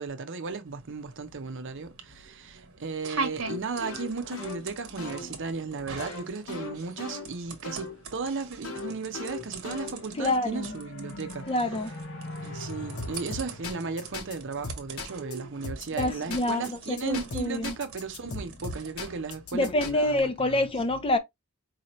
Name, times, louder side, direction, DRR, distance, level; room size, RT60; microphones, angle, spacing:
voice 1, 0.0-11.5 12.4-20.7, right 4 dB, 60° right, 0.7 m, -35 dB
sound 1, 0.7-20.2, right 4 dB, 80° right, 1.1 m, -43 dB
sound 2, 3.4-8.0 8.6-10.3 13.0-14.3 14.6-15.3 15.6-16.7 17.0-19.9, left 3 dB, 85° left, 1.1 m, -38 dB
sound 3, 9.5-15.0, left 1 dB, 60° left, 0.9 m, -43 dB
voice 2, 10.2-10.8 11.5-11.9 15.9-17.7 19.5-21.2, left 1 dB, 25° left, 0.5 m, -27 dB
4.8 x 2.9 x 3.0 m
head